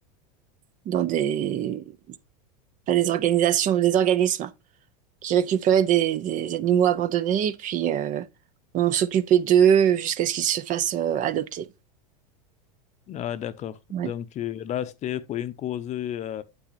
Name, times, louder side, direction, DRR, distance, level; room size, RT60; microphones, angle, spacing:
voice 1, 0.9-1.8 2.9-4.5 5.2-8.3 8.7-11.7 13.9-14.1, right 10 dB, 40° right, 0.8 m, -22 dB
voice 2, 13.1-16.4, left 11 dB, 35° left, 0.8 m, -32 dB
8.9 x 7.8 x 2.6 m
supercardioid pair, 115°, 20 cm